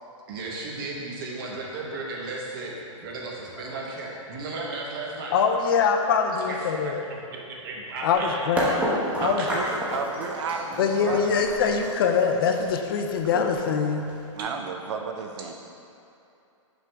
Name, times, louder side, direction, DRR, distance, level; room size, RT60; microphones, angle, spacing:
voice 1, 0.3-2.7 3.0-5.3 6.5-8.7 9.4-9.5 13.3-13.4, right 3 dB, 45° right, -2 dB, 1.0 m, -35 dB
voice 2, 5.3-7.0 8.0-8.6 9.2-9.5 10.8-14.0, left 6 dB, 45° left, 4 dB, 0.5 m, -23 dB
sound 1, 8.6-14.4, equal, 10° right, 0.7 m, -30 dB
voice 3, 9.2-11.4 14.3-15.5, right 5 dB, 65° right, 4 dB, 0.5 m, -32 dB
6.0 x 5.1 x 3.4 m, 2.7 s
hypercardioid pair, 160°, 16 cm